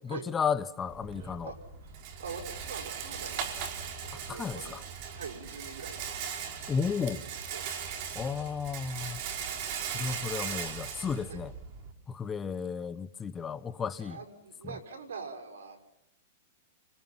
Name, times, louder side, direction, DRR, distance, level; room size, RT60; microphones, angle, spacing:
voice 1, 0.0-1.5 4.1-4.8 6.7-7.2 8.1-9.2 9.8-11.5 12.1-14.2 14.6-14.8, left 6 dB, 15° left, 0.9 m, -33 dB
Rattle, 0.9-11.9, right 7 dB, 45° right, 4.4 m, -39 dB
voice 2, 1.2-1.9 2.2-3.5 4.0-4.7 5.1-6.0 7.1-7.7 11.3-11.4 14.0-15.8, right 5 dB, 85° right, 5.9 m, -44 dB
29.5 x 26.0 x 5.9 m
hypercardioid pair, 140°, 0 cm